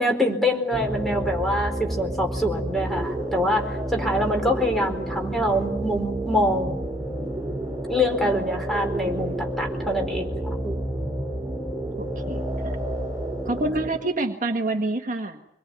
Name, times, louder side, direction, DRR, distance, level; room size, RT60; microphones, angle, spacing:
voice 1, 0.0-6.7 7.9-10.8 13.6-13.7, equal, ahead, 2 dB, 4.4 m, -25 dB
sound 1, 0.7-13.9, right 1 dB, 15° right, 4.6 m, -30 dB
voice 2, 4.1-4.5 12.0-12.7 13.4-15.4, right 2 dB, 45° right, 5 dB, 1.5 m, -28 dB
26.5 x 21.5 x 9.6 m, 0.80 s
head